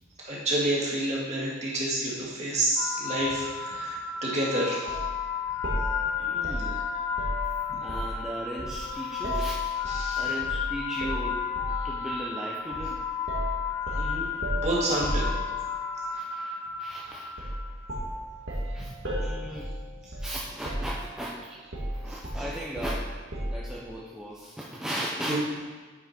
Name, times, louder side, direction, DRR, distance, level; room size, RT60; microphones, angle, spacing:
voice 1, 0.2-4.9 9.1-9.2 9.9-10.3 14.0-14.3 14.5-15.2 17.0-17.1 18.8-18.9 25.3-25.4, right 1 dB, 35° right, -6 dB, 2.1 m, -29 dB
sound 1, 2.7-17.9, left 7 dB, 55° left, 1.5 m, -33 dB
sound 2, 4.9-5.1 5.6-8.2 8.6-10.1 10.4-10.6 11.0-11.9 12.7-12.9 13.3-15.8 17.4-17.6 17.9-20.4 20.6-21.3 21.7-23.7, right 1 dB, 75° right, 1.7 m, -33 dB
voice 2, 6.2-6.8 7.8-11.4 11.8-13.0 13.9-14.0 16.1-16.5 16.8-17.5 18.7-18.9 19.2-19.8 20.2-21.6 21.9-23.1 23.5-25.4, right 1 dB, 5° right, -6 dB, 0.7 m, -37 dB
8.8 x 5.4 x 4.3 m, 1.4 s
head